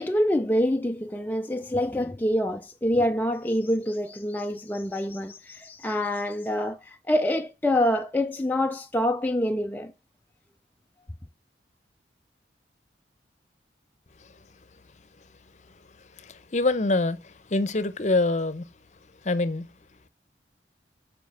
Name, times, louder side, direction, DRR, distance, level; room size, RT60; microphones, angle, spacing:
voice 1, 0.0-9.9, left 1 dB, 10° left, 0.4 m, -26 dB
voice 2, 16.2-18.7 19.2-19.7, left 2 dB, 40° left, 0.7 m, -25 dB
7.3 x 5.0 x 6.2 m
head